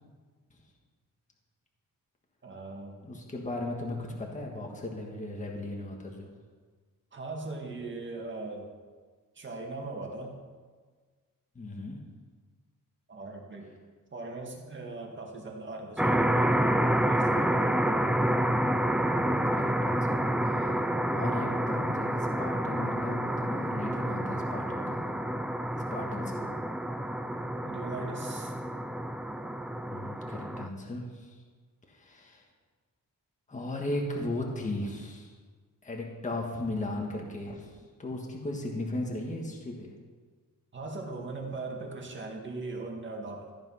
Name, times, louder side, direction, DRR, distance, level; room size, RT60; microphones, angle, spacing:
voice 1, 2.4-3.0 7.1-8.7 9.4-10.4 13.1-13.7 14.1-18.0 27.6-28.5 40.7-43.5, right 3 dB, 35° right, 1 dB, 2.1 m, -39 dB
voice 2, 3.0-6.3 11.5-12.0 19.2-20.2 20.5-20.8 21.1-25.0 25.7-26.5 29.9-31.4 31.9-32.4 33.5-35.3 35.8-37.7 38.0-39.9, left 2 dB, 20° left, 0 dB, 1.7 m, -36 dB
sound 1, 16.0-30.7, right 1 dB, 5° right, 0.4 m, -28 dB
14.0 x 10.5 x 5.7 m, 1.5 s
wide cardioid pair, 180°, 34 cm